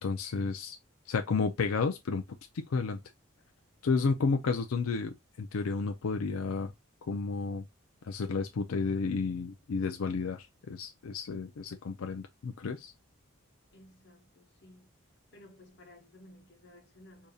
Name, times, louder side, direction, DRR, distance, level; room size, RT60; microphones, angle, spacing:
voice 1, 0.0-0.8 1.1-2.2 2.5-3.0 3.8-6.7 7.1-7.7 8.0-12.9, left 4 dB, 85° left, 0.5 m, -31 dB
voice 2, 13.7-14.9 15.3-17.3, left 1 dB, 55° left, 1.0 m, -56 dB
5.0 x 2.8 x 2.3 m
head